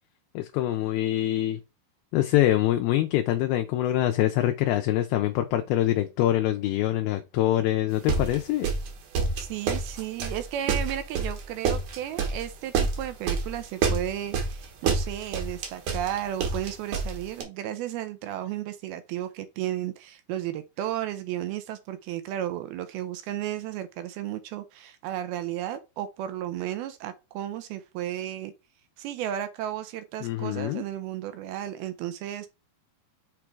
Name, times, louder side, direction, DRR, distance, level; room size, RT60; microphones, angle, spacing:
voice 1, 0.4-1.6 2.1-8.7 30.2-30.8, left 13 dB, 80° left, 2.3 m, -24 dB
sound 1, 8.1-17.4, right 4 dB, 60° right, 2.2 m, -28 dB
voice 2, 9.4-28.5 29.0-32.5, right 12 dB, 80° right, 2.5 m, -33 dB
6.8 x 3.6 x 4.6 m
omnidirectional pair, 4.7 m